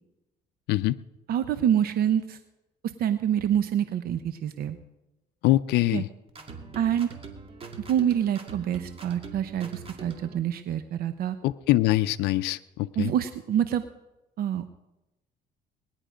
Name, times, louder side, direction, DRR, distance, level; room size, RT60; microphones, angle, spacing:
voice 1, 0.7-1.0 5.4-6.1 11.4-13.1, left 16 dB, 80° left, 12 dB, 0.5 m, -24 dB
voice 2, 1.3-2.4 2.8-4.8 5.9-6.0 6.7-7.1 7.9-11.4 13.0-13.8 14.4-14.6, right 10 dB, 65° right, 10 dB, 0.8 m, -26 dB
sound 1, 6.3-10.4, right 4 dB, 35° right, 2.2 m, -43 dB
20.0 x 10.5 x 5.1 m, 0.98 s
cardioid pair, 110°, 17 cm